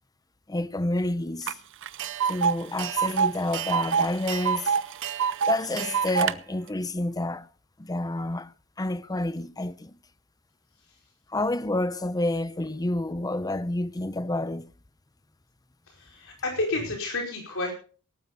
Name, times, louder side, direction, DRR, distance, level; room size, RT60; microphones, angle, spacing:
voice 1, 0.5-1.6 2.2-4.7 5.5-7.5 7.8-9.9 11.3-14.7, left 1 dB, 15° left, 0.6 m, -29 dB
Tick, 1.5-1.6 1.8-6.3, right 7 dB, 60° right, 0.6 m, -26 dB
voice 2, 15.9-17.7, left 2 dB, 65° left, 5.1 m, -30 dB
18.0 x 12.0 x 4.0 m
head